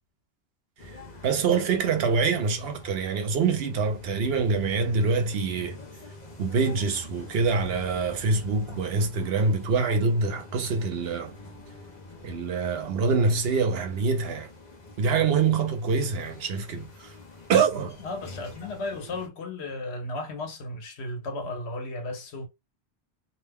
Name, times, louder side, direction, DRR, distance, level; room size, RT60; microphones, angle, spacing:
sound 1, 0.8-19.3, left 2 dB, 50° left, 0.7 m, -46 dB
voice 1, 0.8-5.8 6.4-11.3 12.2-14.5 15.0-17.1 17.5-18.0, right 4 dB, 70° right, 0.9 m, -25 dB
sound 2, 7.1-12.5, left 1 dB, 20° left, 0.9 m, -51 dB
voice 2, 18.0-22.5, left 2 dB, 85° left, 1.1 m, -34 dB
2.6 x 2.1 x 3.4 m
omnidirectional pair, 1.1 m